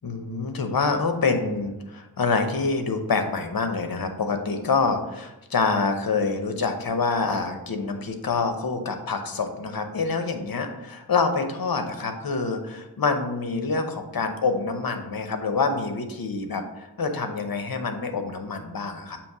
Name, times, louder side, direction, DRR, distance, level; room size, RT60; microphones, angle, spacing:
voice 1, 0.0-19.2, left 4 dB, 65° left, 6 dB, 0.9 m, -26 dB
7.0 x 3.0 x 4.7 m, 0.98 s
cardioid pair, 50°, 38 cm